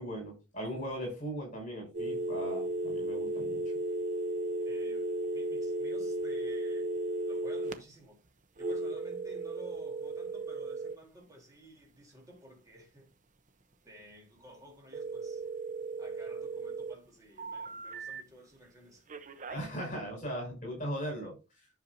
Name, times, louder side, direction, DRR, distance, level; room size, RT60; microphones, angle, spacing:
voice 1, 0.0-3.6 19.5-21.4, equal, 40° left, 5.4 m, -38 dB
sound 1, 1.9-7.7 8.6-10.9 14.9-16.9 17.4-18.2 19.1-19.6, right 2 dB, 40° right, 0.9 m, -35 dB
voice 2, 4.6-6.9 7.3-8.2 8.6-13.1 13.8-15.4 16.0-19.1, equal, 20° right, 3.5 m, -54 dB
10.5 x 6.6 x 2.7 m
head